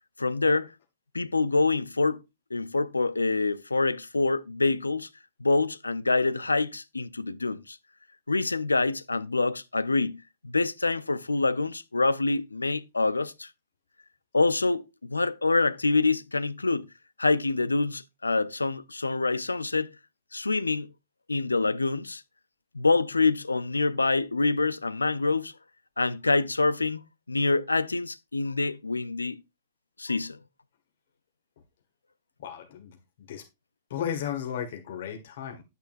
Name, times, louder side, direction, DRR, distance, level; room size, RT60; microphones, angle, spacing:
voice 1, 0.2-0.7 1.1-2.2 2.5-5.1 5.4-7.8 8.3-13.5 14.3-16.9 17.2-19.9 20.3-20.9 21.3-22.2 22.7-25.5 26.0-27.0 27.3-29.4 30.0-30.4, left 3 dB, 85° left, 0.6 m, -26 dB
voice 2, 32.4-33.4 33.9-35.6, left 9 dB, 60° left, 1.8 m, -35 dB
9.2 x 8.7 x 2.6 m
figure-of-eight pair, 100°, 0 cm